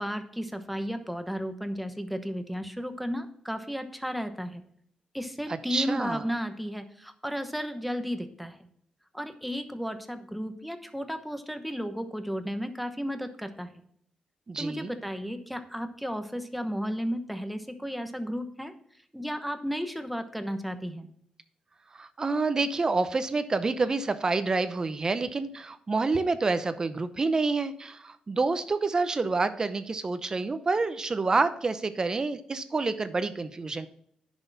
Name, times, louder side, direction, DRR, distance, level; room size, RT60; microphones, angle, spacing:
voice 1, 0.0-4.6 5.1-8.6 9.1-13.8 14.6-18.7 19.1-21.1, equal, ahead, 8 dB, 1.0 m, -34 dB
voice 2, 5.5-6.2 14.5-14.9 21.9-33.9, right 3 dB, 30° right, 11 dB, 0.8 m, -28 dB
10.5 x 6.3 x 4.1 m, 0.66 s
cardioid pair, 110°, 2 cm